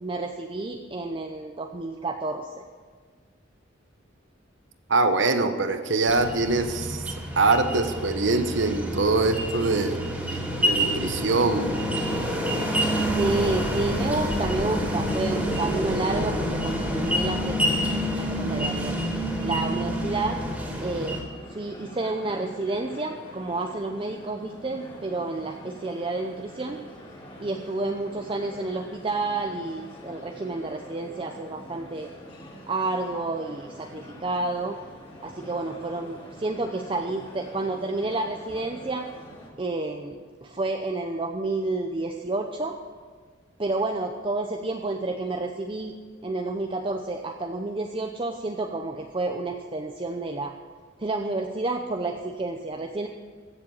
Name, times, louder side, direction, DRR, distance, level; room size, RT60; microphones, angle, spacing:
voice 1, 0.0-2.6 13.1-17.8 18.1-19.0 19.4-20.4 20.8-21.2 21.5-26.8 27.4-32.1 32.7-34.8 35.2-39.0 39.6-42.8 43.6-45.9 46.2-50.5 51.0-53.1, right 2 dB, 25° right, 3 dB, 0.7 m, -30 dB
voice 2, 4.9-7.0 7.4-10.0 10.7-11.7, right 3 dB, 65° right, 8 dB, 1.1 m, -23 dB
sound 1, 6.1-21.2, equal, 5° right, 2.6 m, -27 dB
sound 2, 21.3-39.5, equal, 30° left, 3.0 m, -45 dB
15.5 x 7.4 x 8.7 m, 1.5 s
head